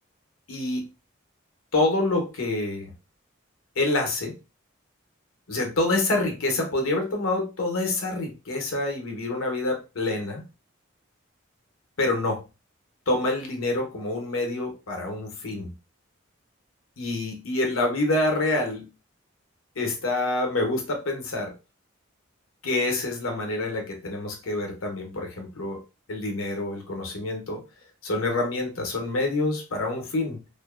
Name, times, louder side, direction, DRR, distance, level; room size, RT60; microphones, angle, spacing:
voice 1, 0.5-0.9 1.7-2.9 3.8-4.3 5.5-10.4 12.0-12.4 13.1-15.7 17.0-18.8 19.8-21.5 22.6-25.8 26.1-27.6 28.0-30.4, left 2 dB, 90° left, 3 dB, 0.8 m, -27 dB
2.6 x 2.2 x 2.3 m, 0.29 s
head